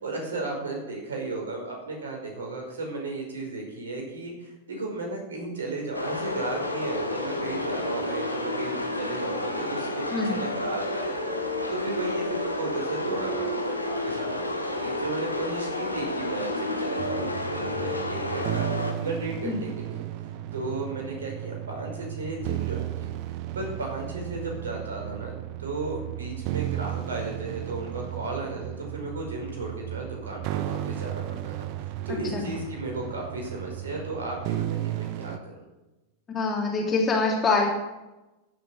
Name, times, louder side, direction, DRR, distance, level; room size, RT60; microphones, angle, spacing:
voice 1, 0.0-18.7 19.0-20.0 20.5-23.1 23.5-25.3 25.6-35.5, right 2 dB, 65° right, 1 dB, 5.3 m, -34 dB
sound 1, 5.9-18.9, left 1 dB, 85° left, 1.8 m, -30 dB
sound 2, 17.0-35.4, right 14 dB, 45° right, 0.7 m, -34 dB
voice 2, 32.1-32.5 36.3-37.7, left 3 dB, 20° left, -1 dB, 3.0 m, -25 dB
15.0 x 8.1 x 7.5 m, 1.0 s
figure-of-eight pair, 90°, 0 cm